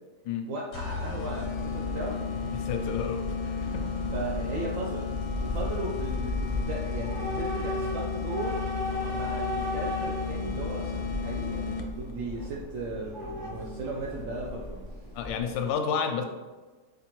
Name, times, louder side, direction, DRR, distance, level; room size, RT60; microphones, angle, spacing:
voice 1, 0.5-2.2 4.1-5.1 5.4-8.6 9.1-15.0, right 2 dB, 75° right, -2 dB, 0.7 m, -36 dB
sound 1, 0.7-12.1, left 6 dB, 70° left, 0.9 m, -34 dB
Train / Subway metro underground, 1.0-15.7, left 1 dB, 35° right, 1.0 m, -36 dB
voice 2, 2.5-3.8 15.1-16.2, left 7 dB, 85° left, 5 dB, 1.3 m, -31 dB
4.1 x 4.0 x 3.0 m, 1.3 s
omnidirectional pair, 1.9 m